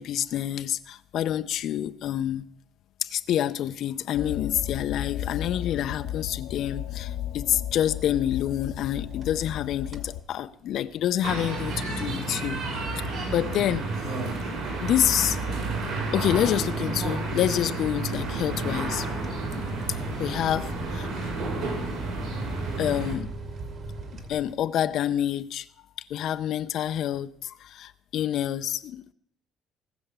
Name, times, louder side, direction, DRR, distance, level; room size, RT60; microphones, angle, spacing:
voice 1, 0.0-2.5 3.0-12.6 13.3-13.9 14.8-15.4 16.1-19.1 20.2-21.1 22.8-23.3 24.3-25.7 26.0-29.1, left 11 dB, 55° left, 0.5 m, -27 dB
sound 1, 4.1-10.2, left 11 dB, 80° left, 1.0 m, -34 dB
sound 2, 9.0-9.6 9.9-10.2 10.6-24.9, right 2 dB, 40° right, 2.0 m, -41 dB
sound 3, 11.2-23.1, right 3 dB, 65° right, 5.9 m, -31 dB
19.0 x 7.0 x 8.0 m
cardioid pair, 165°, 0 cm